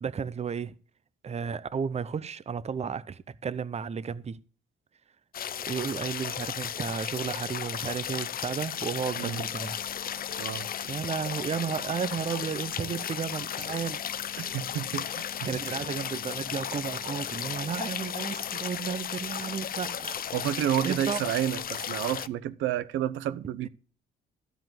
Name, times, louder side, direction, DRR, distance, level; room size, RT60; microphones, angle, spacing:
voice 1, 0.0-0.8 1.2-4.4 5.7-9.8 10.8-14.0 15.4-20.2 20.8-21.2 23.6-23.7, right 6 dB, 35° right, 0.7 m, -33 dB
sound 1, 5.3-22.3, left 9 dB, 50° left, 0.5 m, -35 dB
voice 2, 10.4-10.7 14.4-15.9 20.3-23.7, right 12 dB, 85° right, 0.7 m, -30 dB
13.5 x 5.1 x 7.6 m
cardioid pair, 90°, 20 cm